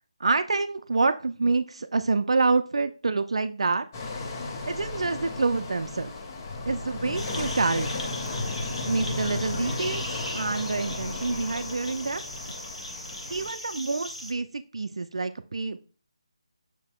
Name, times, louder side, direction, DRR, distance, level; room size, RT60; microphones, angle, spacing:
voice 1, 0.2-3.9 4.6-6.1 6.7-8.1 8.8-10.0 10.3-12.2 13.3-15.9, right 3 dB, 65° right, 10 dB, 0.4 m, -27 dB
sound 1, 3.9-13.5, left 3 dB, 30° left, 0.6 m, -34 dB
sound 2, 7.2-14.3, left 1 dB, 90° left, 1.2 m, -39 dB
5.9 x 4.0 x 2.3 m, 0.35 s
figure-of-eight pair, 155°, 3 cm